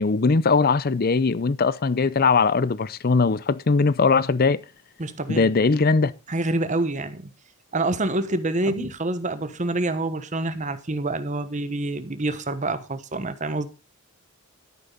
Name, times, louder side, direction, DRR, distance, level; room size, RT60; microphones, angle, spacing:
voice 1, 0.0-4.6 5.3-6.1 8.7-8.9, left 4 dB, 45° left, 0.5 m, -20 dB
voice 2, 5.0-5.5 6.3-7.3 7.7-13.7, right 2 dB, 35° right, 1.2 m, -27 dB
12.5 x 11.0 x 4.0 m
head